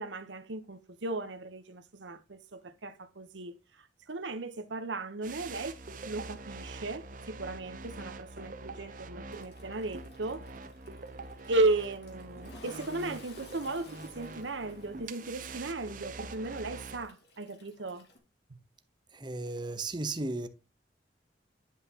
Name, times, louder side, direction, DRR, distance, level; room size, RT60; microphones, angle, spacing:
voice 1, 0.0-10.4 11.5-18.1 18.5-18.6, right 2 dB, 90° right, 1.0 m, -35 dB
sound 1, 5.2-17.1, right 3 dB, 50° right, 0.8 m, -45 dB
Toilet flush, 9.3-18.2, left 2 dB, 65° left, 2.3 m, -56 dB
voice 2, 19.1-20.5, right 2 dB, 25° right, 0.9 m, -35 dB
10.5 x 5.7 x 2.9 m
head